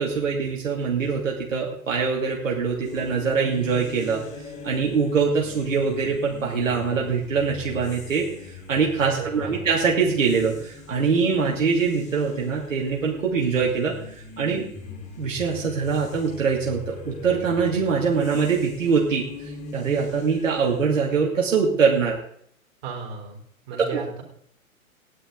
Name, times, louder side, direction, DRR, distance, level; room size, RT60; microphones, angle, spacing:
voice 1, 0.0-4.2 4.6-8.3 8.7-13.9 14.4-14.6 15.2-22.2 23.9-24.0, right 5 dB, 60° right, -3 dB, 3.0 m, -23 dB
sound 1, 2.8-20.9, left 4 dB, 15° left, 2.0 m, -40 dB
voice 2, 9.1-9.5 22.8-23.4 23.7-24.2, right 6 dB, 35° right, 0 dB, 4.4 m, -35 dB
17.5 x 11.0 x 4.0 m, 0.66 s
figure-of-eight pair, 115°, 42 cm